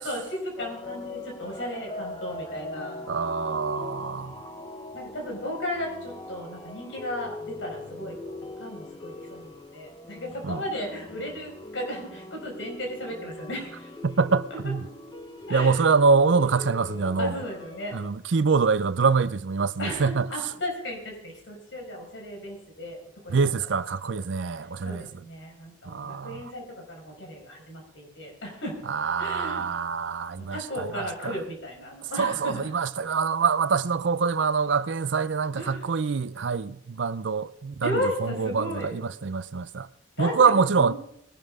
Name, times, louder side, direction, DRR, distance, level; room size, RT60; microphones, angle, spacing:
voice 1, 0.0-3.0 4.9-13.8 15.5-15.9 17.2-18.0 19.8-23.0 23.2-23.5 24.1-24.2 24.8-28.8 29.2-29.7 30.5-32.7 35.6-35.9 37.8-38.9 40.2-41.0, left 1 dB, 80° left, 5.4 m, -35 dB
sound 1, 0.6-18.1, left 2 dB, 25° left, 1.1 m, -41 dB
voice 2, 3.1-4.4 10.4-10.6 14.0-14.8 15.5-17.4 17.9-20.3 23.3-25.1 25.9-26.5 28.9-31.4 32.2-39.9 40.2-40.9, right 5 dB, 75° right, 0.5 m, -25 dB
20.5 x 12.0 x 3.6 m
head